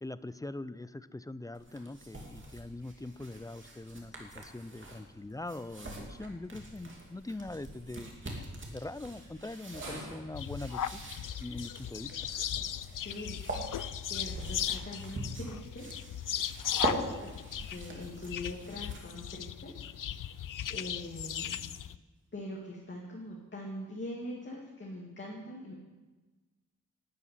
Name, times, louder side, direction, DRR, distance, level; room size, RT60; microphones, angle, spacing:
voice 1, 0.0-11.0 11.4-12.2, left 2 dB, 10° left, 15 dB, 0.4 m, -42 dB
sound 1, 1.5-19.3, right 2 dB, 35° right, 2.6 m, -43 dB
sound 2, 5.1-23.9, right 1 dB, 75° right, 4.6 m, -57 dB
sound 3, 10.3-22.0, left 10 dB, 70° left, 0.5 m, -37 dB
voice 2, 12.9-16.1 16.9-17.3 17.7-19.7 20.0-20.4 20.7-21.6 22.3-25.7, left 1 dB, 35° left, -3 dB, 2.3 m, -43 dB
12.5 x 9.7 x 9.4 m, 1.2 s
wide cardioid pair, 175°, 34 cm